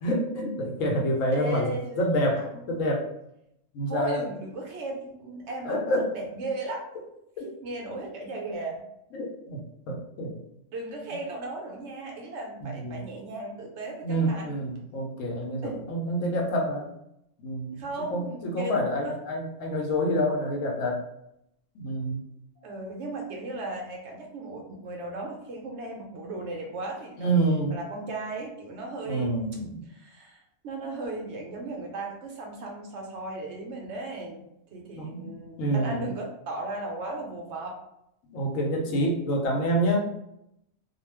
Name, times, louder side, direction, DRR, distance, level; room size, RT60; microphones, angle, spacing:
voice 1, 0.0-1.7 2.0-3.1 3.7-4.3 5.6-6.1 7.4-7.5 9.1-10.3 12.6-13.0 14.0-16.9 17.4-17.8 18.1-21.0 21.7-22.2 27.2-27.7 29.1-29.8 34.9-35.3 35.6-36.0 38.3-40.0, equal, 85° left, 0 dB, 1.1 m, -27 dB
voice 2, 1.3-2.0 2.4-2.8 3.9-5.8 6.1-6.9 7.4-8.9 10.7-14.5 15.6-15.8 17.7-19.1 22.6-27.3 27.7-34.4 34.7-37.8, right 2 dB, 70° right, 0 dB, 0.9 m, -36 dB
2.4 x 2.3 x 3.3 m, 0.79 s
omnidirectional pair, 1.3 m